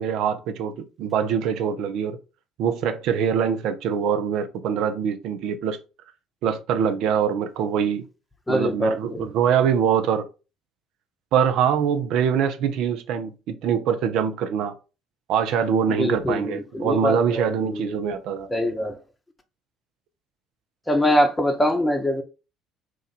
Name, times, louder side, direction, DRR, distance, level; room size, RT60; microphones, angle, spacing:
voice 1, 0.0-2.2 2.6-5.8 6.4-8.0 8.5-10.3 11.3-14.7 15.3-18.5, right 7 dB, 60° right, 0.6 m, -23 dB
voice 2, 8.5-9.3 16.0-17.9 18.5-19.0 20.9-22.2, equal, 15° left, 0.8 m, -23 dB
3.0 x 2.5 x 4.1 m
figure-of-eight pair, 55°, 0 cm